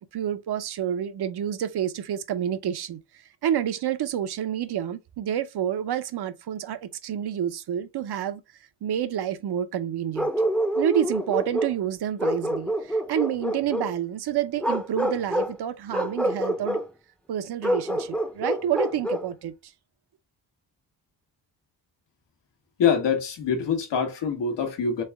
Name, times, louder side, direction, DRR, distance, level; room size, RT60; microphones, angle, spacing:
voice 1, 0.1-3.0 3.4-8.4 8.8-10.3 10.8-16.8 17.3-19.7, right 10 dB, 65° right, 0.7 m, -28 dB
Bark, 10.1-11.8 12.2-13.9 14.6-15.6 15.9-16.9 17.6-19.3, equal, 5° left, 0.6 m, -27 dB
voice 2, 22.8-25.0, left 6 dB, 75° left, 1.3 m, -24 dB
3.5 x 3.3 x 3.4 m
cardioid pair, 65°, 42 cm